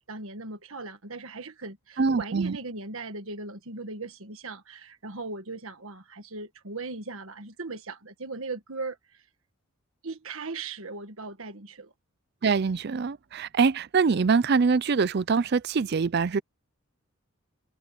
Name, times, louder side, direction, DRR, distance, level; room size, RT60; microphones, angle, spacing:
voice 1, 0.1-9.2 10.0-11.9, right 3 dB, 70° right, 1.6 m, -38 dB
voice 2, 2.0-2.5 12.4-16.4, right 5 dB, 45° right, 0.4 m, -24 dB
head